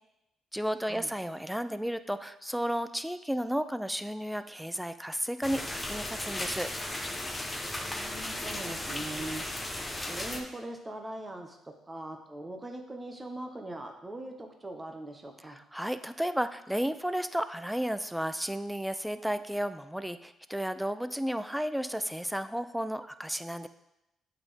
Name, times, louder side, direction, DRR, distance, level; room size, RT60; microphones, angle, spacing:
voice 1, 0.5-6.7 15.5-23.7, equal, 5° right, 11 dB, 0.3 m, -33 dB
sound 1, 5.4-10.4, left 1 dB, 15° left, 0.8 m, -36 dB
voice 2, 7.8-9.4 10.1-15.6, right 1 dB, 20° right, 3 dB, 0.9 m, -41 dB
8.1 x 3.6 x 3.4 m, 0.88 s
cardioid pair, 90°, 0 cm